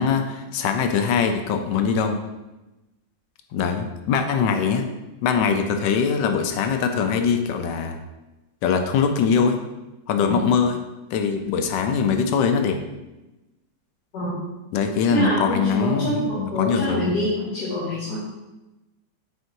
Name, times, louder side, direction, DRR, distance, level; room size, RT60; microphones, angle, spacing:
voice 1, 0.0-2.2 3.5-4.9 5.2-8.0 8.6-9.6 10.1-10.8 11.1-12.8 14.7-17.2, left 6 dB, 85° left, 6 dB, 1.3 m, -22 dB
voice 2, 15.1-18.2, equal, 65° left, -11 dB, 2.5 m, -25 dB
8.0 x 4.6 x 2.7 m, 1.0 s
omnidirectional pair, 1.9 m